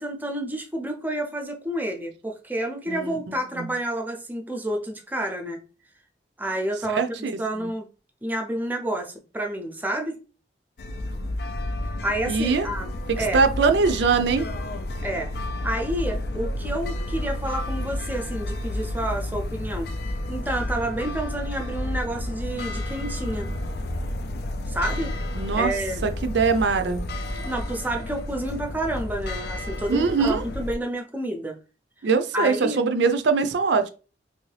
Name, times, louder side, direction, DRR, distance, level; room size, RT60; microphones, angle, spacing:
voice 1, 0.0-5.6 6.4-7.0 7.4-7.9 8.2-10.2 12.0-12.9 13.2-13.4 15.0-15.3 15.6-19.9 20.3-23.5 24.7-25.1 25.5-26.0 27.4-31.6 32.3-32.8, right 1 dB, 10° right, 2 dB, 0.5 m, -29 dB
voice 2, 2.9-3.2 3.6-3.7 6.9-7.7 12.3-12.7 13.3-14.5 25.4-25.7 26.0-27.0 29.9-30.4 32.0-33.9, right 4 dB, 70° right, 9 dB, 0.4 m, -22 dB
sound 1, 10.8-30.7, left 1 dB, 55° left, 0.4 m, -31 dB
3.0 x 2.7 x 3.2 m, 0.34 s
head